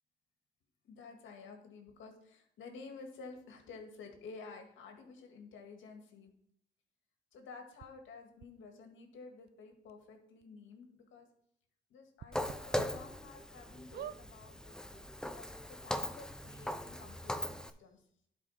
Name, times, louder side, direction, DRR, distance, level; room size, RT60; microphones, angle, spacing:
voice 1, 0.8-6.3 7.3-11.3 11.9-18.0, left 4 dB, 75° left, 4 dB, 1.9 m, -52 dB
sound 1, 7.8-7.9 8.4-8.5 9.5-9.6 9.9-10.0 10.4-10.5 12.2-12.9 13.4-13.5 13.9-14.2 15.0-15.1 15.3-15.4, right 10 dB, 55° right, 0.5 m, -45 dB
Walk footsteps, 12.3-17.7, left 1 dB, 5° left, 0.6 m, -40 dB
11.5 x 4.9 x 4.2 m, 0.72 s
cardioid pair, 90°, 20 cm